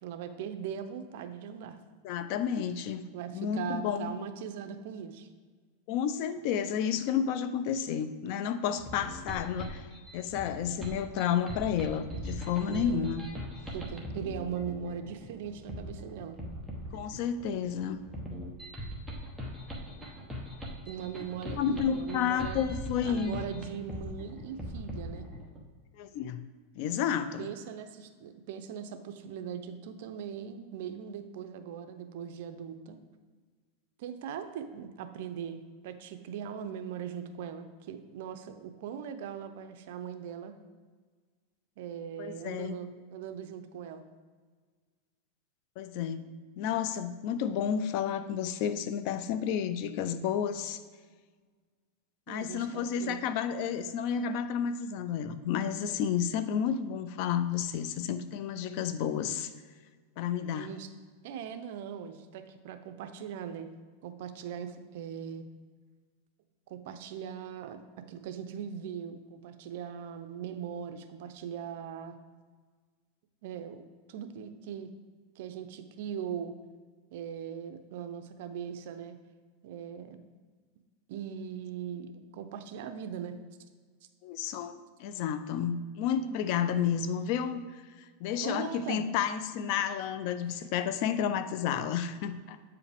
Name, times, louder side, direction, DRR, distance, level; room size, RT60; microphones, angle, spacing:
voice 1, 0.0-1.8 3.1-5.3 12.6-13.2 13.7-16.4 20.9-22.7 23.0-25.3 27.4-33.0 34.0-40.6 41.8-44.0 52.3-53.2 60.5-60.9 61.2-63.7 64.0-65.4 66.7-67.8 68.1-72.2 73.4-73.8 74.1-74.9 75.4-76.6 77.1-79.2 79.6-80.2 81.1-83.4 88.4-89.0 90.5-90.6, right 8 dB, 65° right, 8 dB, 0.6 m, -40 dB
voice 2, 2.0-3.0 3.3-4.1 5.9-9.9 10.1-13.2 16.9-18.0 21.4-23.4 26.0-26.4 26.8-27.5 42.2-42.8 45.8-50.8 52.3-59.5 60.2-60.7 84.2-87.6 88.2-92.6, left 8 dB, 50° left, 11 dB, 0.5 m, -31 dB
sound 1, 8.7-25.6, equal, ahead, 1.0 m, -40 dB
8.2 x 4.8 x 3.5 m, 1.5 s
supercardioid pair, 145°, 0 cm